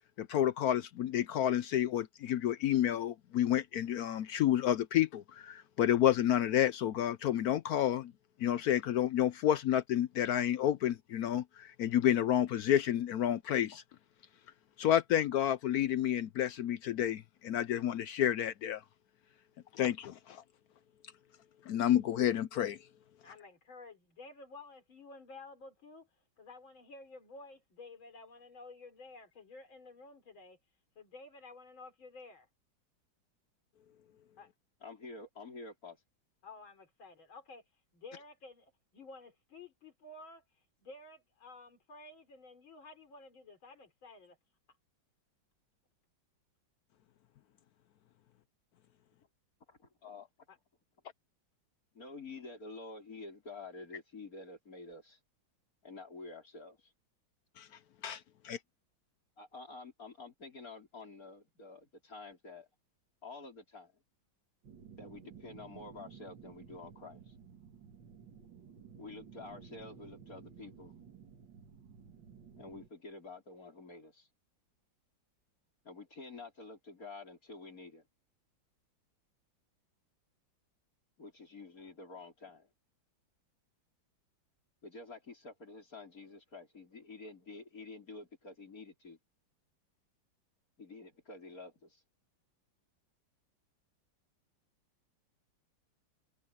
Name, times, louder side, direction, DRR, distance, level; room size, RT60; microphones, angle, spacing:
voice 1, 0.2-8.1 8.4-13.8 14.8-18.8 19.7-20.4 21.7-22.8 57.6-57.7 58.0-58.6, left 11 dB, 70° left, 0.9 m, -30 dB
voice 2, 23.2-26.1 26.4-30.6 31.0-32.5 34.4-34.5 36.4-37.6 37.9-40.4 40.8-44.4 50.5-50.6, left 3 dB, 85° left, 4.4 m, -52 dB
voice 3, 34.8-36.0 49.7-50.3 51.9-55.2 55.8-56.9 59.4-62.7 63.2-64.0 65.0-67.3 69.0-71.0 72.6-74.3 75.8-78.0 81.2-82.7 84.8-89.2 90.8-92.0, left 3 dB, 45° left, 5.0 m, -49 dB
sound 1, 64.6-72.9, right 7 dB, 65° right, 2.5 m, -54 dB
omnidirectional pair, 2.1 m